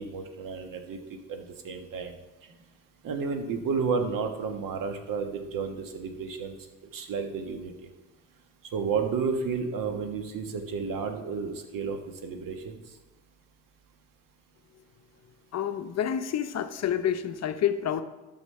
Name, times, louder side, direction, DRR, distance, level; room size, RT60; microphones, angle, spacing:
voice 1, 0.0-2.1 3.0-6.6 6.9-7.9 8.7-12.8, right 5 dB, 50° right, 6 dB, 1.5 m, -32 dB
voice 2, 15.5-18.0, left 9 dB, 40° left, 10 dB, 0.8 m, -28 dB
12.5 x 6.3 x 3.3 m, 1.2 s
hypercardioid pair, 60°, 42 cm